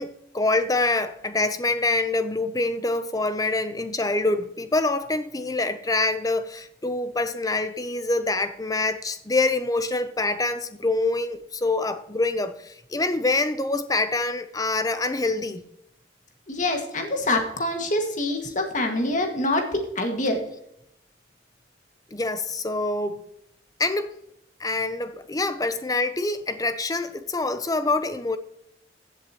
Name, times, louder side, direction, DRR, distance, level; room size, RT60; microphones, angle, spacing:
voice 1, 0.0-15.6 22.1-23.2 23.8-24.1 24.6-28.4, left 2 dB, 20° left, 0.6 m, -25 dB
voice 2, 16.5-20.4, left 1 dB, 40° left, 1.9 m, -25 dB
15.5 x 7.9 x 3.0 m
head